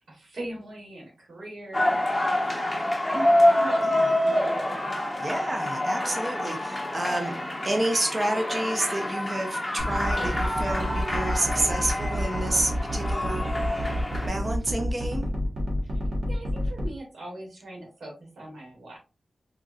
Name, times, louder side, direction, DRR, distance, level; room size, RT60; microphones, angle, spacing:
voice 1, 0.1-2.3 3.1-4.4 4.7-5.1 16.3-19.0, right 1 dB, 85° right, -1 dB, 1.5 m, -40 dB
sound 1, 1.7-14.3, left 1 dB, 10° left, 1.1 m, -27 dB
voice 2, 5.2-7.3 7.6-13.5 14.2-15.3, right 1 dB, 30° right, 3 dB, 0.7 m, -29 dB
sound 2, 9.8-16.9, equal, 65° right, 1.4 m, -29 dB
4.3 x 2.6 x 2.4 m, 0.32 s
wide cardioid pair, 100°, 0 cm